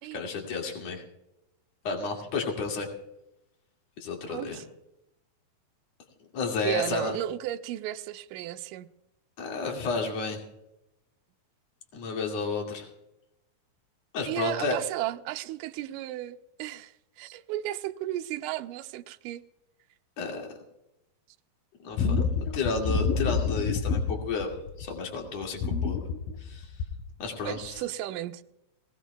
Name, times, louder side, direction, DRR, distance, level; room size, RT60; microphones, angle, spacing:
voice 1, 0.1-1.0 1.8-2.9 4.0-4.6 6.3-7.1 9.4-10.4 11.9-12.9 14.1-14.8 20.2-20.5 21.8-26.0 26.4-26.7 27.2-27.6, left 4 dB, 50° left, 3.2 m, -31 dB
voice 2, 4.2-4.7 6.6-8.9 14.3-19.4 27.5-28.4, right 14 dB, 80° right, 2.1 m, -34 dB
sound 1, 22.0-25.0 25.4-27.1 27.6-27.8, left 5 dB, 75° left, 2.6 m, -28 dB
19.0 x 19.0 x 2.3 m
omnidirectional pair, 4.1 m